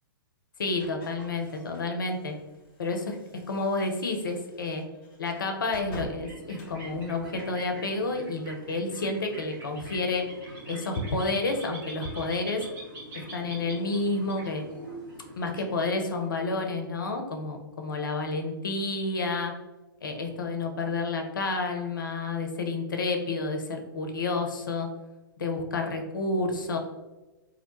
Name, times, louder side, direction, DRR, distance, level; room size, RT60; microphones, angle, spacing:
voice 1, 0.6-2.4 2.8-3.2 3.5-4.8 5.2-10.3 10.7-12.7 13.1-14.6 15.4-19.5 20.0-24.9 25.4-26.8, left 3 dB, 65° left, 4 dB, 0.5 m, -30 dB
sound 1, 0.8-7.6, left 1 dB, 35° left, 1.0 m, -47 dB
sound 2, 6.0-16.3, right 2 dB, 20° right, 0.9 m, -44 dB
2.4 x 2.1 x 2.8 m, 1.1 s
figure-of-eight pair, 110°, 12 cm